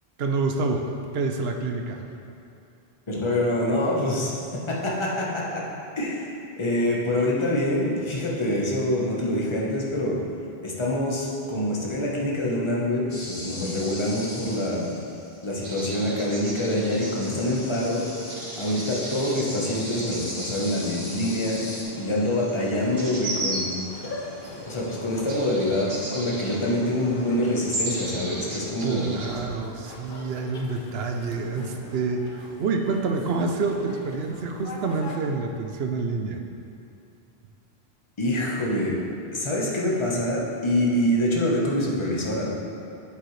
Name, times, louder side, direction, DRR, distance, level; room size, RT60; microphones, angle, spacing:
voice 1, 0.2-0.9 1.1-2.0 28.8-36.4, right 4 dB, 75° right, 4 dB, 0.9 m, -27 dB
voice 2, 3.1-4.4 4.7-5.6 6.0-10.2 10.6-15.0 15.4-18.0 18.6-21.7 22.0-23.8 24.6-29.1 38.2-39.0 39.3-42.6, left 1 dB, 30° left, -4 dB, 1.1 m, -25 dB
sound 1, 13.1-15.7 16.0-21.8, left 1 dB, 85° left, 1.7 m, -39 dB
sound 2, 15.6-29.4, right 1 dB, 55° right, 1.3 m, -36 dB
sound 3, 23.9-35.2, left 2 dB, 60° left, 0.9 m, -42 dB
8.4 x 7.6 x 3.2 m, 2.7 s
omnidirectional pair, 1.1 m